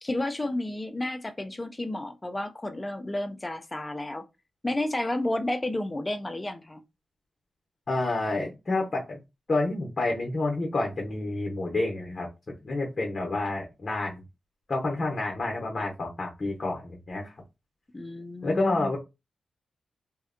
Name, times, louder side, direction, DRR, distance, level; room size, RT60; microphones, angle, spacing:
voice 1, 0.0-4.3 4.6-6.8 17.9-18.9, left 1 dB, 25° left, 0.4 m, -31 dB
voice 2, 7.9-9.2 9.5-12.3 12.6-14.2 14.7-17.3 18.4-19.0, left 2 dB, 50° left, 0.7 m, -29 dB
2.6 x 2.1 x 2.4 m
cardioid pair, 55°, 0 cm